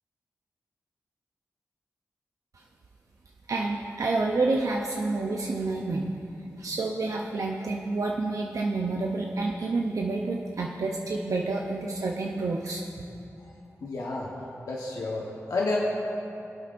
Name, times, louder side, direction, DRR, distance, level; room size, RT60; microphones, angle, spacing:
voice 1, 3.5-6.2 6.6-12.8, right 3 dB, 70° right, 0 dB, 0.6 m, -29 dB
voice 2, 13.8-14.3 14.7-15.8, left 3 dB, 80° left, -4 dB, 1.1 m, -30 dB
22.5 x 8.1 x 2.6 m, 2.7 s
cardioid pair, 50°, 6 cm